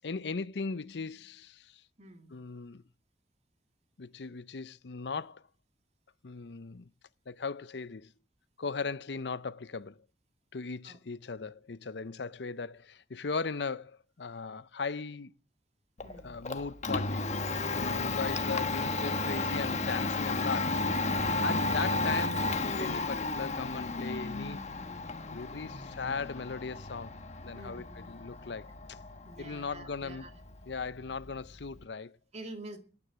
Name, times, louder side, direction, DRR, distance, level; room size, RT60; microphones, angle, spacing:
voice 1, 0.0-1.8 2.3-2.8 4.0-5.4 6.2-6.9 7.3-8.1 8.6-10.0 10.5-15.3 16.2-17.3 17.7-21.2 21.4-24.6 25.3-27.2 27.4-29.0 29.4-30.3 30.7-32.2, left 4 dB, 70° left, 0.7 m, -38 dB
voice 2, 2.0-2.3 10.8-11.0 16.0-16.3 17.9-18.3 25.6-25.8 27.5-28.2 29.2-30.3 32.3-32.8, right 2 dB, 40° right, 2.5 m, -48 dB
Domestic sounds home sounds, 16.0-31.8, left 3 dB, 40° left, 1.3 m, -33 dB
18.5 x 9.8 x 7.4 m
head